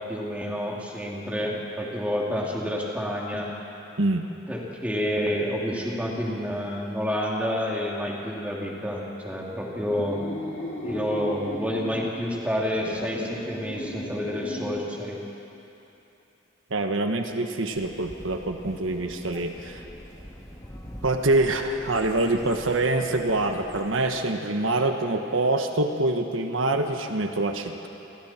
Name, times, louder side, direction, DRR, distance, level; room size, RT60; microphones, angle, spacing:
voice 1, 0.1-3.5 4.5-10.2 10.8-15.2, equal, 5° right, -3 dB, 2.7 m, -29 dB
voice 2, 4.0-4.3 16.7-19.8 21.0-27.9, right 2 dB, 85° right, 5 dB, 1.3 m, -25 dB
sound 1, 9.8-12.1 12.7-14.9, equal, 60° left, 6.5 m, -36 dB
sound 2, 17.7-24.1, equal, 20° left, 2.4 m, -44 dB
29.0 x 23.0 x 4.4 m, 3.0 s
head